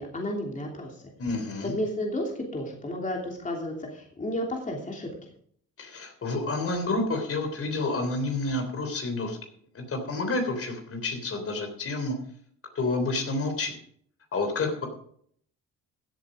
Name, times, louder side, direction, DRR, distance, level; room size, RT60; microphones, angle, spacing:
voice 1, 0.0-1.1 1.6-5.1, left 1 dB, 25° left, 0 dB, 3.0 m, -32 dB
voice 2, 1.2-1.7 5.8-9.4 9.7-12.1 12.8-13.8 14.3-14.9, left 2 dB, 50° left, 5 dB, 3.4 m, -29 dB
15.5 x 8.2 x 5.0 m, 0.63 s
cardioid pair, 90°, 30 cm